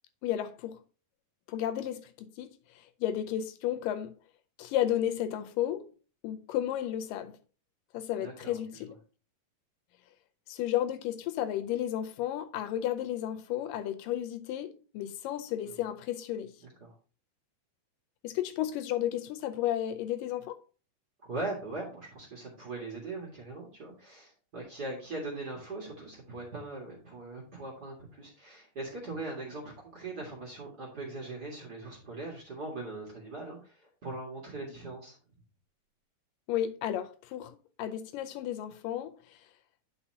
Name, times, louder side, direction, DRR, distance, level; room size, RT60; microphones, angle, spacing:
voice 1, 0.2-0.8 1.5-4.1 4.6-5.9 6.2-7.4 7.9-9.0 10.5-16.5 18.2-20.6 36.5-39.4, left 11 dB, 80° left, 2.2 m, -33 dB
voice 2, 8.2-8.8 15.7-15.8 16.6-16.9 21.2-35.2, right 2 dB, 35° right, 1.9 m, -40 dB
9.6 x 5.6 x 2.8 m
omnidirectional pair, 4.0 m